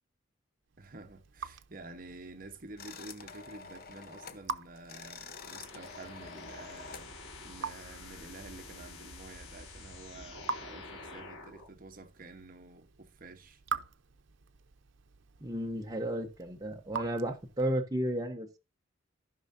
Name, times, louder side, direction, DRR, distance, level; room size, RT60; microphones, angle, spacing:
Raindrop / Drip, 0.7-17.9, right 5 dB, 75° right, 0.7 m, -45 dB
voice 1, 0.8-7.1 7.4-13.6, right 2 dB, 45° right, 1.0 m, -49 dB
sound 1, 2.8-4.5 4.8-7.1, left 5 dB, 50° left, 0.9 m, -48 dB
sound 2, 5.3-11.7, left 3 dB, 90° left, 3.3 m, -48 dB
voice 2, 15.4-18.6, right 1 dB, 20° right, 1.0 m, -33 dB
15.0 x 5.5 x 2.6 m
head